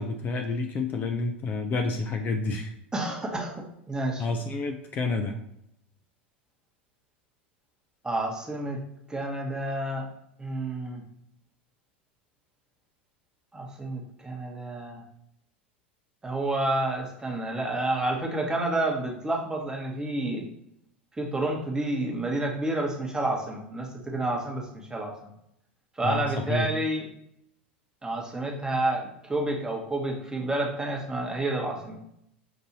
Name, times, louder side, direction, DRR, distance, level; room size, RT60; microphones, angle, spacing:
voice 1, 0.0-2.7 4.2-5.4 26.0-26.7, left 3 dB, 30° left, 5 dB, 0.4 m, -29 dB
voice 2, 2.9-4.2 8.0-8.8 9.1-10.1 10.4-11.0 13.5-15.0 16.2-20.4 21.2-25.3 26.0-27.1 28.0-32.0, right 2 dB, 10° right, 0 dB, 1.0 m, -29 dB
5.9 x 2.6 x 2.8 m, 0.76 s
hypercardioid pair, 85°, 6 cm